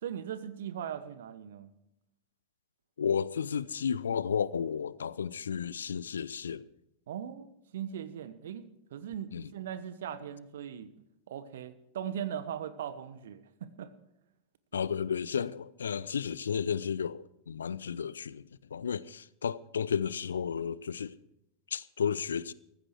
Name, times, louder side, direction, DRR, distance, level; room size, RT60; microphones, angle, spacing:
voice 1, 0.0-1.7 7.1-10.9 11.3-13.9, right 9 dB, 60° right, 1.2 m, -39 dB
voice 2, 3.0-6.7 9.3-9.5 14.7-21.2 21.7-22.5, left 7 dB, 70° left, 0.5 m, -33 dB
15.0 x 14.5 x 4.7 m
figure-of-eight pair, 90°, 0 cm